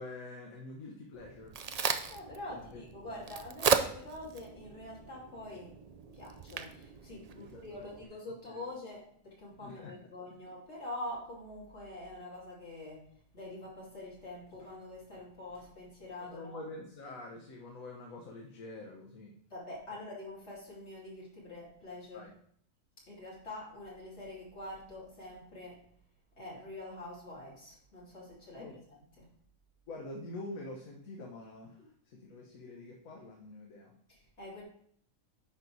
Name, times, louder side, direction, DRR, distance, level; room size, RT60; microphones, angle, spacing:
voice 1, 0.0-1.5 2.5-3.2 7.3-8.1 8.5-8.6 9.6-9.9 16.2-19.3 19.9-20.0 22.1-22.3 28.6-28.8 29.9-33.9, left 2 dB, 80° left, 0 dB, 1.5 m, -46 dB
Crack, 1.1-8.0, right 6 dB, 85° right, 0.3 m, -36 dB
voice 2, 2.1-5.8 6.1-16.6 19.5-22.3 23.1-25.8 26.4-29.3 34.1-34.6, left 1 dB, 55° left, -5 dB, 3.1 m, -45 dB
10.5 x 4.0 x 4.5 m, 0.63 s
omnidirectional pair, 1.4 m